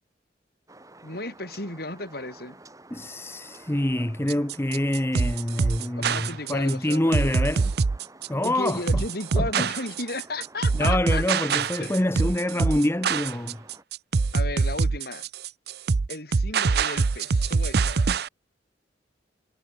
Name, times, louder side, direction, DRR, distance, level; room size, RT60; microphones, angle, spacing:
sound 1, 0.7-13.8, right 2 dB, 20° right, 5.8 m, -50 dB
voice 1, 1.0-2.6 6.0-7.3 8.4-11.2 11.8-12.2 14.3-15.3 16.1-18.2, left 2 dB, 60° left, 7.8 m, -34 dB
voice 2, 2.9-7.7 8.3-9.0 9.4-9.7 10.7-13.6, left 1 dB, 15° left, 0.9 m, -26 dB
sound 2, 4.3-18.3, right 4 dB, 60° right, 0.5 m, -24 dB
head